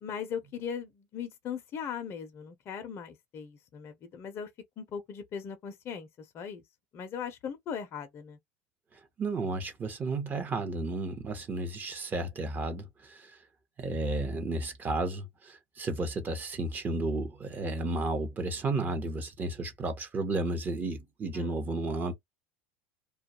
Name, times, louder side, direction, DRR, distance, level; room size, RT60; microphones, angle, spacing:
voice 1, 0.0-4.5 4.8-6.6 6.9-8.4 21.3-21.6, left 7 dB, 40° left, 0.5 m, -39 dB
voice 2, 9.2-13.4 13.8-22.1, right 2 dB, 25° right, 0.7 m, -33 dB
2.2 x 2.2 x 2.8 m
supercardioid pair, 105°, 7 cm